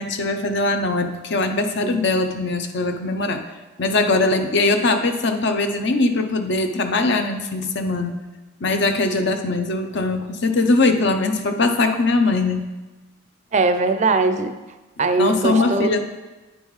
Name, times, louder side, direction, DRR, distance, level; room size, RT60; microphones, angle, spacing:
voice 1, 0.0-3.4 3.8-8.2 8.6-12.6 15.2-16.1, left 2 dB, 55° left, 7 dB, 0.6 m, -21 dB
voice 2, 13.5-14.5 15.0-15.9, right 3 dB, 35° right, 9 dB, 0.4 m, -20 dB
9.2 x 5.4 x 3.1 m, 1.1 s
head